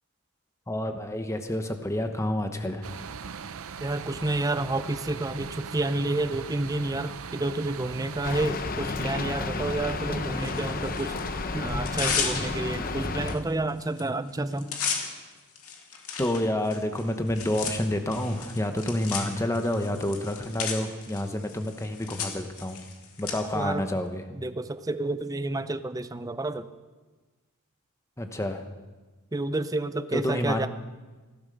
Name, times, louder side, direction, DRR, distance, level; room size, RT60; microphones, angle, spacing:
voice 1, 0.7-2.9 16.2-22.8 23.2-24.2 28.2-28.6 30.1-30.6, left 1 dB, 15° left, 6 dB, 1.0 m, -29 dB
sound 1, 2.8-8.5, right 6 dB, 65° right, 0.6 m, -39 dB
voice 2, 3.8-14.8 23.5-23.8 24.4-26.7 29.3-30.7, right 2 dB, 15° right, 12 dB, 0.5 m, -30 dB
Rain, 8.2-13.4, left 3 dB, 40° left, 0.8 m, -32 dB
Tearing, 10.4-11.2 11.7-12.8 13.3-13.4 13.7-14.0 14.3-23.3, left 6 dB, 75° left, 2.3 m, -34 dB
16.0 x 11.5 x 6.6 m, 1.3 s
head